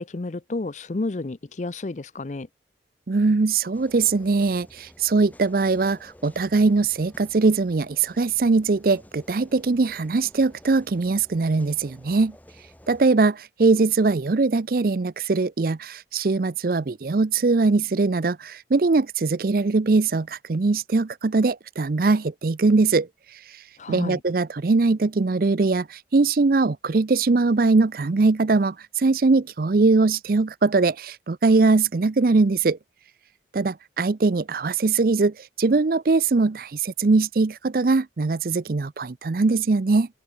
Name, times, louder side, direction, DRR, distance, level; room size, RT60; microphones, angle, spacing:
voice 1, 0.0-2.5 23.8-24.2, left 2 dB, 40° left, 0.6 m, -31 dB
voice 2, 3.1-12.3 12.9-23.1 23.9-32.8 33.5-40.1, right 3 dB, 55° right, 0.5 m, -21 dB
sound 1, 3.7-13.1, equal, 10° left, 3.7 m, -52 dB
open air
head